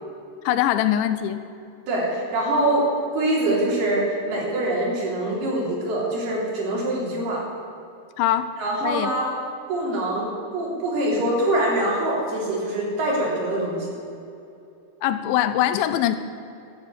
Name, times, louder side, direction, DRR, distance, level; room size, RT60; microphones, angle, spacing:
voice 1, 0.5-1.4 8.2-8.5 8.8-9.1 15.0-16.2, left 12 dB, 85° left, 11 dB, 2.9 m, -22 dB
voice 2, 1.9-2.8 3.1-7.4 8.6-9.3 9.7-13.9, right 1 dB, 55° right, -3 dB, 5.2 m, -24 dB
14.0 x 10.5 x 8.8 m, 2.7 s
omnidirectional pair, 5.5 m